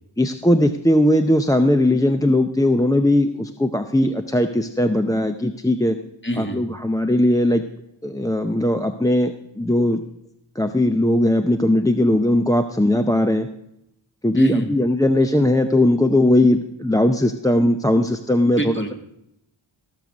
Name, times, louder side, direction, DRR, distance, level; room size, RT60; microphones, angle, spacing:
voice 1, 0.2-6.0 6.4-7.6 8.0-10.0 10.6-13.5 14.2-18.9, left 1 dB, 5° left, 7 dB, 0.6 m, -19 dB
voice 2, 6.2-6.6 14.3-14.7 18.6-18.9, right 1 dB, 25° left, 4 dB, 1.9 m, -25 dB
15.5 x 6.7 x 6.3 m, 0.81 s
wide cardioid pair, 45°, 48 cm